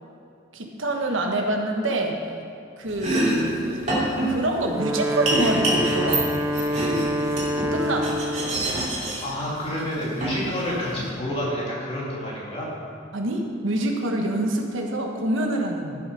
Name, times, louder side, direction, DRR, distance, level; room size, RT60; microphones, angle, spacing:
voice 1, 0.5-2.2 2.8-6.5 6.8-7.1 7.7-8.2 13.1-16.0, right 1 dB, 85° right, 2 dB, 1.3 m, -26 dB
Domestic sounds home sounds, 2.9-11.1, right 1 dB, 35° right, 2.8 m, -28 dB
Wind instrument woodwind instrument, 4.6-8.8, equal, 10° right, 0.3 m, -26 dB
voice 2, 9.2-12.7, left 1 dB, 30° left, -6 dB, 2.5 m, -29 dB
13.0 x 7.2 x 5.3 m, 2.5 s
head